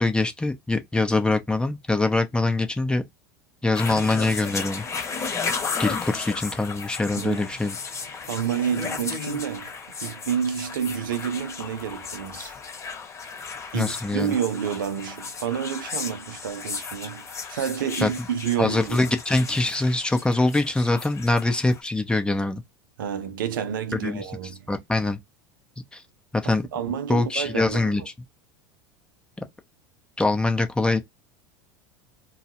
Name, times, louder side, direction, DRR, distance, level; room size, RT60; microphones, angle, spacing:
voice 1, 0.0-3.0 3.6-4.9 5.8-7.8 13.7-14.4 18.0-18.1 18.6-22.6 24.0-24.2 24.7-25.2 25.9-26.0 26.3-26.6 27.1-28.0 30.2-31.0, left 2 dB, 10° left, 0.6 m, -23 dB
sound 1, 3.7-21.8, left 5 dB, 25° left, 1.0 m, -34 dB
voice 2, 7.2-7.5 8.3-9.7 10.0-12.6 13.7-19.0 23.0-24.7 26.4-28.1, right 8 dB, 80° right, 0.5 m, -29 dB
2.3 x 2.0 x 2.8 m
hypercardioid pair, 85°, 11 cm